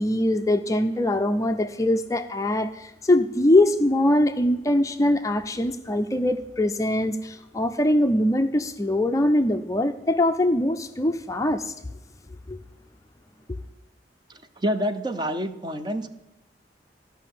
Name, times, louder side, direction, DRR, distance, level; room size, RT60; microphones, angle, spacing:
voice 1, 0.0-11.7 12.5-12.6, left 1 dB, 20° left, 7 dB, 0.5 m, -22 dB
voice 2, 14.6-16.1, equal, 25° right, 8 dB, 0.7 m, -27 dB
13.5 x 5.7 x 9.2 m, 0.93 s
head